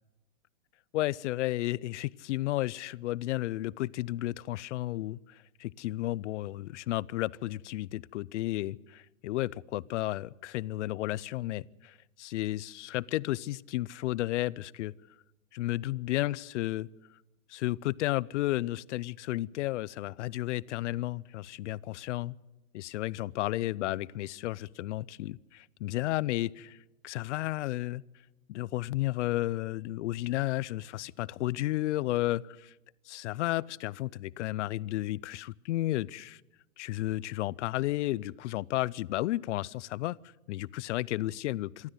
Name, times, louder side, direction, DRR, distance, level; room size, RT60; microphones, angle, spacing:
voice 1, 0.9-14.9 15.5-16.9 17.5-22.4 22.7-26.8 27.0-28.0 28.5-32.7 33.1-36.4 36.8-40.2 40.5-41.9, left 16 dB, 60° left, 22 dB, 0.6 m, -33 dB
25.5 x 13.0 x 8.0 m, 1.0 s
hypercardioid pair, 145°, 40 cm